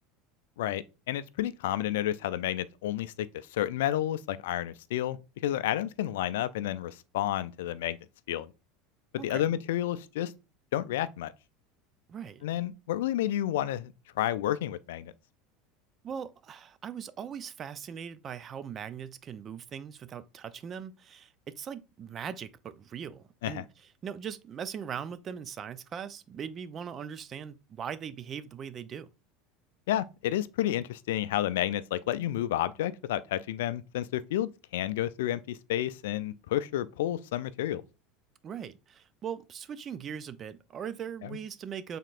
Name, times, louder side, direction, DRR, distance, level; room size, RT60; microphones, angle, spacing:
voice 1, 0.6-5.2 5.4-8.0 8.3-8.5 9.2-10.3 10.7-11.3 12.4-15.1 23.4-23.6 29.9-37.8 41.2-41.4, left 12 dB, 80° left, 0.3 m, -31 dB
voice 2, 12.1-12.4 16.0-23.7 24.0-29.1 38.4-42.0, right 7 dB, 40° right, 0.4 m, -40 dB
5.6 x 3.7 x 2.4 m
hypercardioid pair, 90°, 0 cm